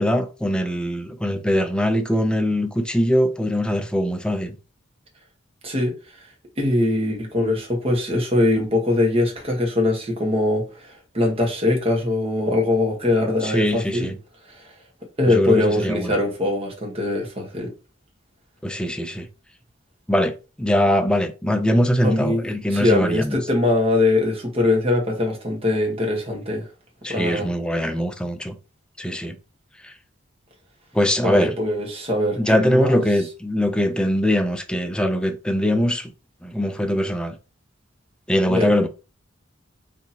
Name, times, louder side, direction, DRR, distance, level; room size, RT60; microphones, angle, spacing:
voice 1, 0.0-4.6 13.4-14.2 15.3-16.2 18.6-19.3 20.1-23.4 27.0-28.6 29.0-29.4 29.8-29.9 30.9-31.6 32.4-36.1 36.4-37.4 38.3-38.9, equal, 5° left, 0.4 m, -22 dB
voice 2, 5.6-5.9 6.6-14.1 14.5-14.6 15.2-17.7 22.0-26.7 27.1-27.5 31.2-33.0 38.4-38.7, left 2 dB, 30° right, 1.2 m, -22 dB
4.1 x 2.7 x 2.8 m
head